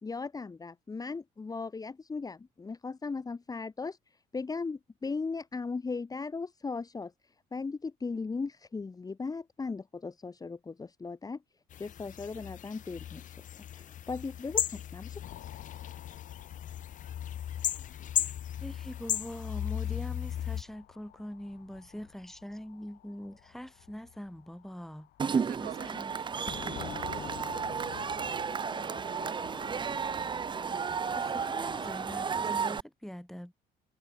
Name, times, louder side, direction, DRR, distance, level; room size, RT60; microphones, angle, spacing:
voice 1, 0.0-4.0 4.3-7.1 7.5-11.4 11.8-15.2, left 4 dB, 20° left, 1.9 m, -37 dB
sound 1, 11.7-20.6, left 10 dB, 50° left, 0.9 m, -36 dB
sound 2, 15.2-32.4, left 14 dB, 70° left, 1.9 m, -49 dB
voice 2, 18.6-26.1 31.1-33.5, equal, ahead, 6.7 m, -43 dB
Cheering / Crowd, 25.2-32.8, right 6 dB, 25° right, 0.7 m, -33 dB
voice 3, 25.3-27.4, right 12 dB, 60° right, 1.6 m, -48 dB
cardioid pair, 110°, 17 cm